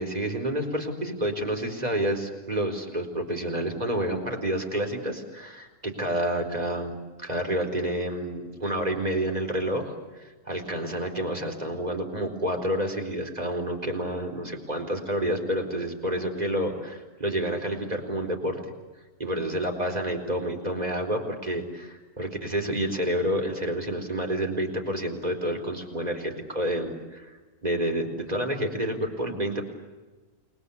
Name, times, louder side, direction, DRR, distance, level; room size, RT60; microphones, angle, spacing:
voice 1, 0.0-9.9 10.2-18.6 19.2-27.4 27.6-29.7, right 1 dB, 25° right, 4 dB, 4.5 m, -29 dB
29.5 x 22.0 x 8.4 m, 1.2 s
omnidirectional pair, 1.5 m